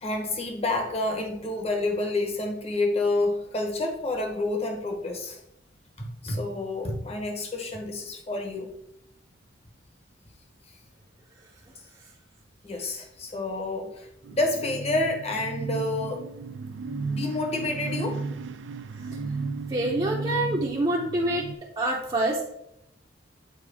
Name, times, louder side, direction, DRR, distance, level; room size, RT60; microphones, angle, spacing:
voice 1, 0.0-5.4 6.0-8.7 12.6-16.2 17.0-18.2, left 2 dB, 35° left, 3 dB, 1.0 m, -29 dB
sound 1, 14.2-21.5, right 4 dB, 70° right, 0.4 m, -34 dB
voice 2, 19.7-21.5 21.8-22.4, right 1 dB, 25° right, -4 dB, 0.7 m, -26 dB
7.7 x 4.6 x 3.4 m, 0.79 s
head